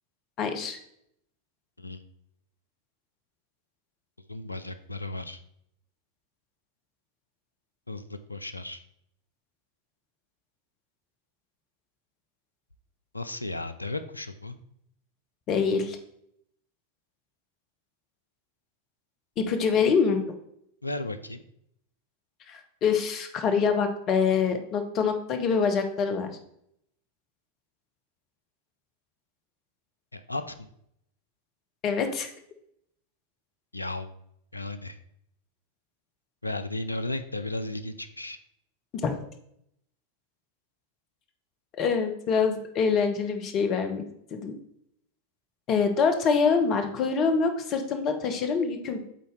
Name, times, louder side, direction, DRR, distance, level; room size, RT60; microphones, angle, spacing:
voice 1, 0.4-0.8 15.5-16.0 19.4-20.2 22.5-26.3 31.8-32.3 39.0-39.2 41.7-44.0 44.3-44.5 45.7-49.0, left 5 dB, 35° left, 6 dB, 0.9 m, -25 dB
voice 2, 4.3-5.4 7.9-8.8 13.1-14.6 20.8-21.4 30.1-30.7 33.7-34.1 34.5-35.0 36.4-38.4, left 2 dB, 85° left, 10 dB, 0.4 m, -34 dB
7.6 x 4.1 x 3.3 m, 0.72 s
figure-of-eight pair, 90°, 0 cm